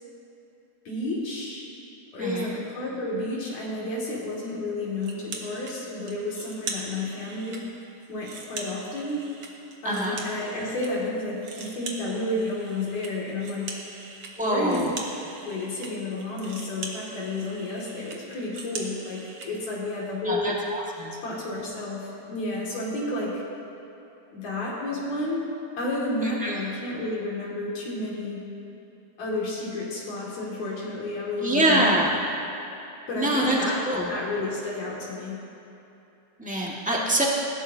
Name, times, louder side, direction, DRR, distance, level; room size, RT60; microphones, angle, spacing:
voice 1, 0.9-1.7 2.1-7.6 8.1-9.2 9.8-13.8 14.4-14.8 15.4-20.6 21.2-23.4 24.3-25.4 25.8-28.4 29.2-31.9 33.1-35.4, left 2 dB, 70° left, -5 dB, 3.5 m, -31 dB
voice 2, 2.2-2.5 9.8-10.2 14.3-14.9 20.2-21.1 26.2-26.5 31.4-32.1 33.2-33.6 33.8-34.1 36.4-37.3, right 1 dB, 5° right, -4 dB, 0.7 m, -25 dB
sound 1, 5.0-5.7 6.1-7.6 8.0-10.9 11.2-19.5, right 3 dB, 55° right, 1.9 m, -40 dB
20.0 x 15.5 x 2.8 m, 2.9 s
omnidirectional pair, 3.4 m